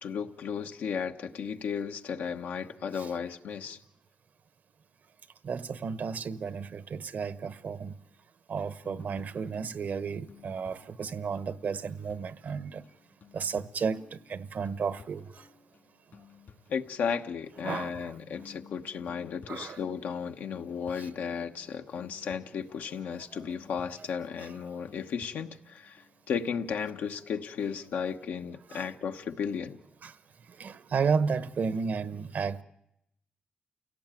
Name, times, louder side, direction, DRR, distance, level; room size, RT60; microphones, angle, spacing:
voice 1, 0.0-3.8 16.7-26.0 26.3-29.8, left 7 dB, 90° left, 1.2 m, -34 dB
voice 2, 5.4-7.9 8.5-12.8 13.3-14.0 14.3-15.2 17.6-18.0 19.5-19.8 28.7-28.8 30.0-30.1 30.6-32.6, right 5 dB, 70° right, 1.0 m, -32 dB
sound 1, 8.8-27.0, left 6 dB, 70° left, 3.1 m, -56 dB
29.0 x 17.0 x 9.0 m
cardioid pair, 70°, 3 cm